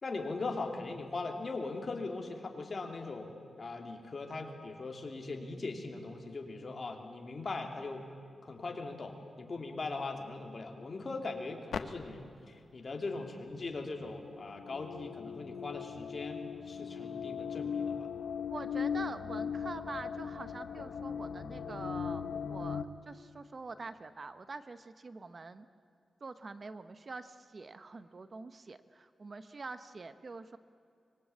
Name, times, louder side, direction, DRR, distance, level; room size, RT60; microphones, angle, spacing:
voice 1, 0.0-8.0 8.4-18.1, left 3 dB, 40° left, 3 dB, 3.1 m, -40 dB
sound 1, 11.7-11.8 13.7-22.8, left 7 dB, 90° left, 1.1 m, -38 dB
voice 2, 18.5-25.7 26.2-30.6, right 3 dB, 40° right, 11 dB, 0.9 m, -45 dB
25.0 x 22.5 x 8.7 m, 2.6 s
wide cardioid pair, 110°, 0 cm